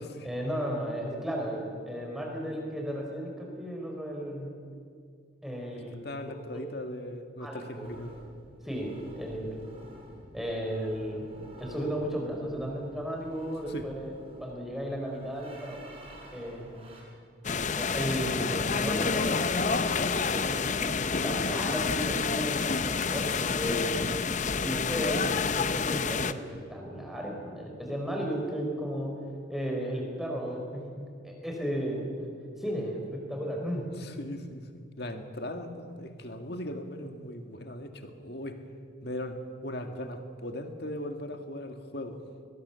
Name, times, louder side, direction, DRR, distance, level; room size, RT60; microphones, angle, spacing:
voice 1, 0.2-4.5 5.4-6.0 6.5-6.6 7.4-7.9 8.6-9.5 10.3-11.3 11.6-15.8 16.3-16.7 17.7-20.0 20.3-24.1 24.6-29.2 29.5-32.3 32.6-33.9, equal, ahead, 0 dB, 4.5 m, -34 dB
voice 2, 6.0-8.1 13.7-13.9 34.0-38.6 39.0-42.2, left 1 dB, 55° left, 5 dB, 2.0 m, -38 dB
sound 1, 7.8-17.0, equal, 30° right, 5.0 m, -50 dB
sound 2, 17.4-26.3, left 5 dB, 40° left, 0.7 m, -28 dB
23.0 x 20.5 x 7.0 m, 2.2 s
head